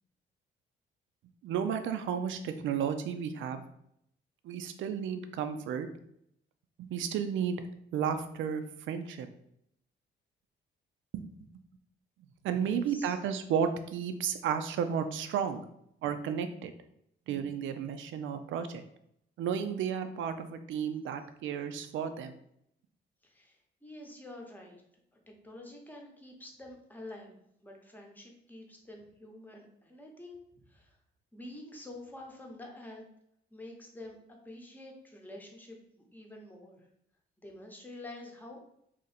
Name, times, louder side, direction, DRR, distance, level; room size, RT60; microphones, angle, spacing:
voice 1, 1.4-3.6 4.4-5.9 6.8-7.6 7.9-9.3 11.1-11.2 12.4-15.6 16.0-16.7 17.3-18.8 19.4-22.3, right 7 dB, 75° right, 9 dB, 0.5 m, -33 dB
voice 2, 12.6-13.1 23.2-24.8 25.3-27.4 27.6-30.4 30.6-31.0 31.3-33.0 33.5-36.9 37.4-38.6, left 1 dB, 10° left, 0 dB, 0.9 m, -48 dB
2.8 x 2.6 x 4.1 m, 0.73 s
cardioid pair, 90°, 20 cm